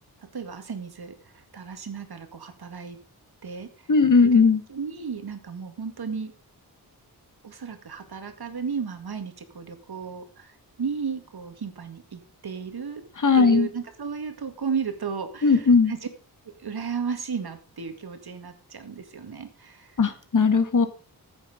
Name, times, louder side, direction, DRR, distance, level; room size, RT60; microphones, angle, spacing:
voice 1, 0.2-3.0 3.4-3.9 4.2-4.4 4.7-6.3 7.4-13.0 13.3-16.0 16.6-20.0, right 6 dB, 70° right, 7 dB, 2.1 m, -34 dB
voice 2, 3.9-4.6 13.2-13.7 15.4-15.9 20.0-20.9, left 4 dB, 50° left, 9 dB, 1.7 m, -18 dB
14.0 x 8.1 x 5.1 m, 0.38 s
wide cardioid pair, 115°, 39 cm